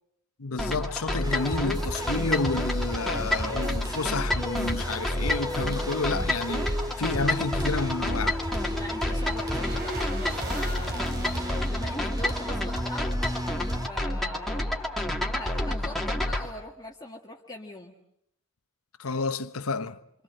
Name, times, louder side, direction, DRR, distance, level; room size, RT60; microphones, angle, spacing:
voice 1, 0.4-8.4 19.0-20.0, left 3 dB, 85° left, 1.0 m, -30 dB
sound 1, 0.6-16.5, left 1 dB, ahead, 2.4 m, -30 dB
sound 2, 1.2-13.9, equal, 20° right, 2.2 m, -34 dB
sound 3, 7.9-14.3 14.6-14.7, right 2 dB, 50° right, 2.8 m, -44 dB
voice 2, 8.6-13.1 13.8-14.9 15.2-17.9, left 1 dB, 20° left, 1.8 m, -41 dB
27.5 x 26.0 x 7.6 m
head